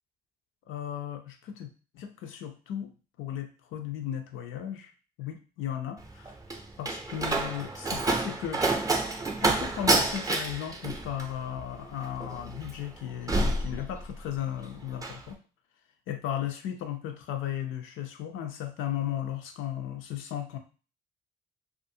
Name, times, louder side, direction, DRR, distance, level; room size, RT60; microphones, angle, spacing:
voice 1, 0.7-2.9 3.2-4.9 5.2-6.3 6.8-8.6 9.4-15.4 16.1-20.6, left 10 dB, 85° left, 6 dB, 0.5 m, -35 dB
Slam, 6.0-14.4 14.7-15.2, right 2 dB, 15° right, 0.5 m, -29 dB
2.5 x 2.4 x 2.6 m, 0.36 s
cardioid pair, 90°, 20 cm